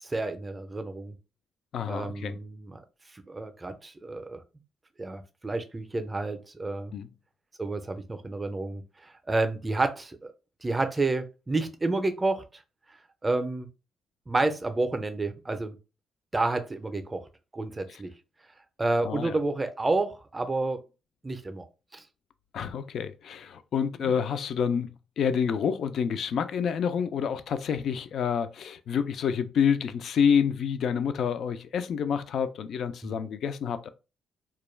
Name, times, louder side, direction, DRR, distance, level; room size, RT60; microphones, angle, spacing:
voice 1, 0.0-1.1 1.9-2.8 3.3-4.4 5.0-6.9 7.6-10.3 10.6-12.6 13.2-13.7 14.3-15.8 16.3-17.3 17.5-18.1 18.8-20.8 21.2-21.6 21.9-22.0 24.0-24.1 33.0-33.1, right 2 dB, 20° right, 0.5 m, -30 dB
voice 2, 1.7-2.4 6.9-7.1 17.9-18.0 19.0-19.4 22.5-24.9 25.2-33.9, left 7 dB, 65° left, 0.3 m, -28 dB
2.2 x 2.1 x 3.1 m
cardioid pair, 90°, 0 cm